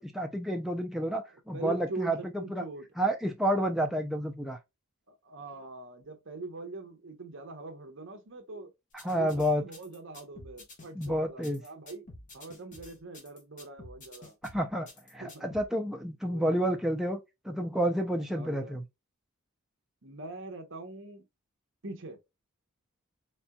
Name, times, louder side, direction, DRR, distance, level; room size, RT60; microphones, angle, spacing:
voice 1, 0.0-2.6 3.0-4.6 9.0-9.6 11.0-11.6 14.5-17.2 17.4-18.8, equal, ahead, 0.4 m, -30 dB
voice 2, 1.5-2.9 5.1-8.7 9.1-12.1 12.3-14.4 15.2-15.5 16.2-16.6 18.2-18.8 20.0-21.3 21.8-22.2, right 3 dB, 55° right, 0.8 m, -43 dB
sound 1, 9.0-15.6, left 2 dB, 35° left, 1.0 m, -50 dB
4.3 x 3.5 x 2.2 m
head